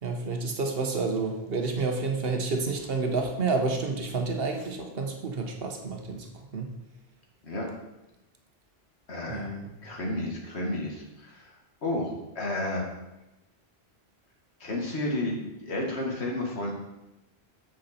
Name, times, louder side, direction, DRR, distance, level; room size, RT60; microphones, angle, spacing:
voice 1, 0.0-6.7 9.3-9.8, right 3 dB, 65° right, 3 dB, 1.2 m, -30 dB
voice 2, 9.1-9.5 9.8-11.5 11.8-12.1 12.4-12.8 14.6-16.7, left 1 dB, 80° left, 0 dB, 2.0 m, -31 dB
7.8 x 7.4 x 4.3 m, 0.97 s
omnidirectional pair, 1.1 m